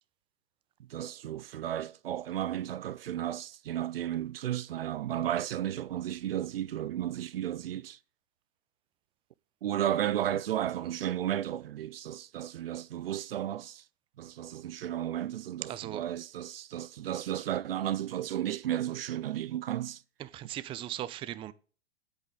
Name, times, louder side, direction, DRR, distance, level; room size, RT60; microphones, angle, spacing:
voice 1, 0.9-8.0 9.6-13.8 14.2-20.0, right 11 dB, 60° right, 0.5 m, -33 dB
voice 2, 15.7-16.0 20.2-21.5, right 13 dB, 15° right, 0.5 m, -38 dB
10.5 x 8.5 x 3.7 m
figure-of-eight pair, 110°, 33 cm